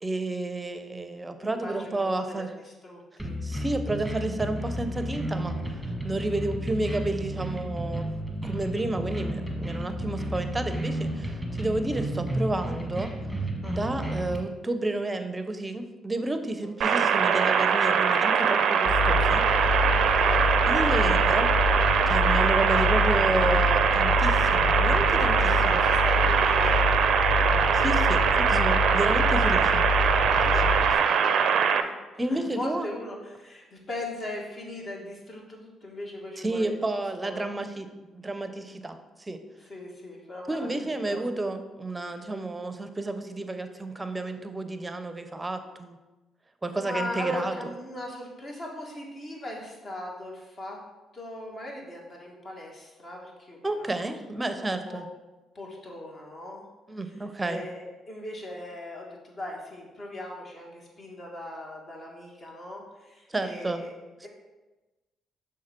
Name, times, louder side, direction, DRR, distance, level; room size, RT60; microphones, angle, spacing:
voice 1, 0.0-2.5 3.4-5.5 6.0-8.1 8.4-13.1 13.6-19.4 20.7-21.5 22.1-25.8 27.7-29.9 30.4-30.7 32.2-32.9 36.4-37.9 38.1-39.4 40.5-46.0 46.6-47.5 53.6-55.1 56.9-57.6 63.3-63.8, right 2 dB, 20° right, 8 dB, 0.6 m, -31 dB
voice 2, 1.4-3.4 13.6-14.1 16.6-17.0 19.8-20.5 25.3-27.1 30.5-32.0 32.3-36.7 37.2-37.5 39.7-41.2 46.8-50.8 51.1-54.0 54.4-55.0 55.6-56.6 57.4-63.9 64.2-64.3, left 1 dB, 40° left, -1 dB, 1.7 m, -39 dB
sound 1, 3.2-14.4, right 1 dB, ahead, 1.3 m, -32 dB
sound 2, 16.8-31.8, right 7 dB, 65° right, 0.4 m, -22 dB
sound 3, 18.9-31.0, left 3 dB, 60° left, 0.5 m, -27 dB
6.4 x 3.7 x 4.4 m, 1.1 s
supercardioid pair, 60°, 0 cm